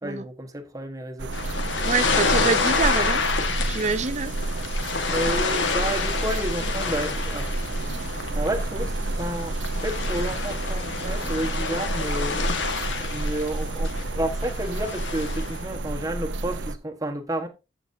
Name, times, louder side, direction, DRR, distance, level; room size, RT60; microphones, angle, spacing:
voice 1, 0.0-1.4 5.0-7.5 8.3-12.4 13.1-17.5, right 1 dB, 20° right, 1.3 m, -31 dB
sound 1, 1.2-16.7, right 2 dB, 70° right, 0.8 m, -30 dB
sound 2, 1.3-15.6, left 4 dB, 85° left, 1.6 m, -29 dB
voice 2, 1.8-4.4, right 4 dB, 40° right, 0.5 m, -26 dB
14.5 x 5.9 x 2.7 m
head